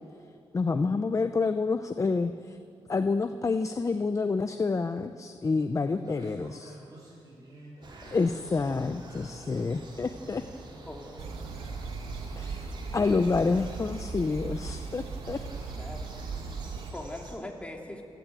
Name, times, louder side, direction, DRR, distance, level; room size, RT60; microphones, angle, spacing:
voice 1, 0.5-2.6 2.9-6.8 8.0-10.4 12.3-15.4, left 4 dB, 30° left, 9 dB, 0.7 m, -28 dB
voice 2, 5.9-8.7 9.0-11.9 13.3-13.9 15.5-15.8 16.1-16.7, right 2 dB, 35° right, -4 dB, 4.9 m, -50 dB
sound 1, 7.8-17.4, right 2 dB, 50° right, 4.0 m, -47 dB
voice 3, 10.9-11.2 15.8-16.2 16.9-18.0, left 1 dB, 10° left, 1 dB, 2.8 m, -41 dB
sound 2, 11.2-16.9, right 4 dB, 90° right, 1.9 m, -38 dB
28.0 x 12.0 x 9.1 m, 2.5 s
cardioid pair, 105°, 10 cm